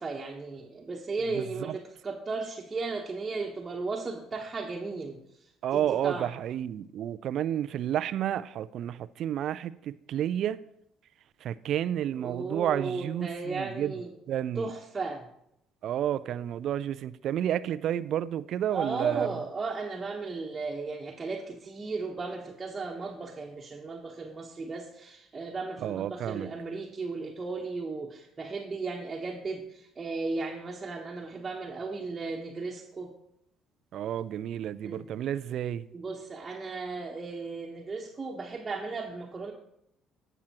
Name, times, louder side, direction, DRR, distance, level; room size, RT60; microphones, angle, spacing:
voice 1, 0.0-6.3 12.2-14.1 14.5-15.2 18.7-33.1 34.8-35.0 35.9-39.5, right 3 dB, 30° right, 1.2 m, -35 dB
voice 2, 1.3-1.8 5.6-10.6 11.4-14.0 14.3-14.7 15.8-19.3 25.8-26.5 33.9-35.8, right 10 dB, 55° right, 0.3 m, -31 dB
17.0 x 6.1 x 3.0 m
figure-of-eight pair, 50°, 0 cm